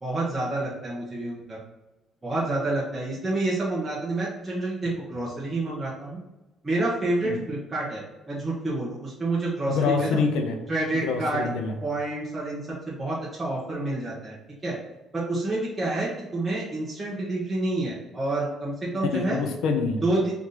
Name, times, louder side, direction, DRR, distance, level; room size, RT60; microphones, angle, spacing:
voice 1, 0.0-1.6 2.2-6.2 6.6-10.2 10.7-11.5 11.8-12.6 12.9-14.4 14.6-14.7 15.1-19.4 20.0-20.3, right 2 dB, 15° right, -7 dB, 1.0 m, -28 dB
voice 2, 9.7-10.6 10.9-11.7 19.1-20.0, left 5 dB, 75° left, 5 dB, 0.7 m, -26 dB
4.8 x 2.7 x 3.9 m, 1.0 s
cardioid pair, 165°, 0 cm